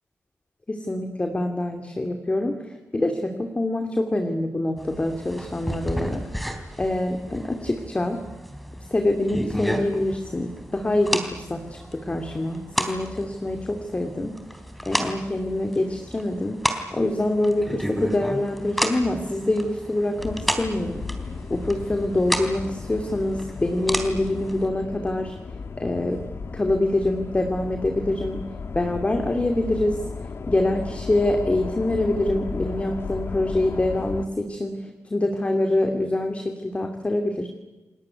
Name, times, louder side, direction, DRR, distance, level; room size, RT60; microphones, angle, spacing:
voice 1, 0.7-6.2 6.8-8.2 8.9-14.4 14.8-16.6 16.9-21.1 21.5-25.4 25.8-26.2 26.5-28.4 28.7-30.0 30.4-37.5, left 1 dB, 25° left, 5 dB, 2.6 m, -25 dB
sound 1, 4.8-24.7, equal, ahead, 3.5 m, -33 dB
sound 2, 20.2-34.3, left 4 dB, 55° left, 1.6 m, -35 dB
29.0 x 19.5 x 9.7 m, 1.1 s
cardioid pair, 90°, 5 cm